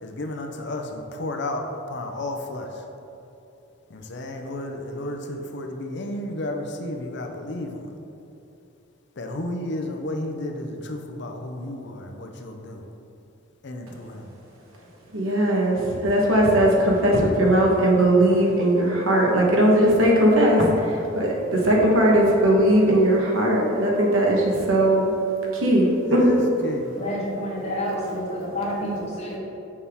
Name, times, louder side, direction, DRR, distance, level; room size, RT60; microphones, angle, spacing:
voice 1, 0.0-2.8 3.9-7.9 9.2-12.9 13.6-14.3 26.1-26.9, left 1 dB, 60° left, 3 dB, 0.6 m, -32 dB
voice 2, 15.1-25.1 25.5-26.3, right 1 dB, 90° right, -2 dB, 1.3 m, -19 dB
voice 3, 27.0-29.4, equal, 35° left, -4 dB, 1.4 m, -29 dB
6.5 x 5.6 x 3.6 m, 2.8 s
head